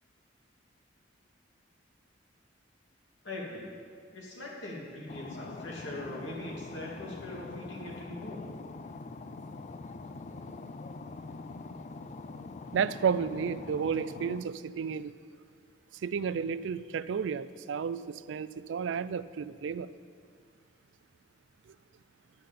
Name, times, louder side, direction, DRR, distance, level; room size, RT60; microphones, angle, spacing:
voice 1, 3.2-3.7 4.1-8.5, left 1 dB, 75° left, -3 dB, 2.5 m, -41 dB
sound 1, 5.1-14.4, left 3 dB, 40° left, 0.4 m, -44 dB
voice 2, 12.7-15.1 16.0-19.9, right 6 dB, 75° right, 15 dB, 0.4 m, -32 dB
10.5 x 5.7 x 8.4 m, 2.1 s
head